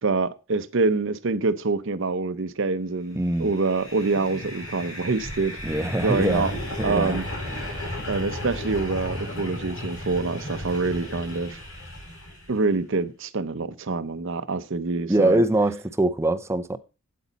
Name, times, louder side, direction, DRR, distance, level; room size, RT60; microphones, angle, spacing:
voice 1, 0.0-6.5 6.8-7.2 8.1-11.6 12.5-15.4, right 3 dB, 60° right, 0.7 m, -26 dB
voice 2, 3.1-3.5 5.6-6.5 6.8-7.2 15.1-16.8, right 1 dB, 10° right, 0.5 m, -23 dB
sound 1, 3.4-12.6, left 1 dB, 85° left, 4.6 m, -34 dB
8.5 x 8.2 x 4.0 m
head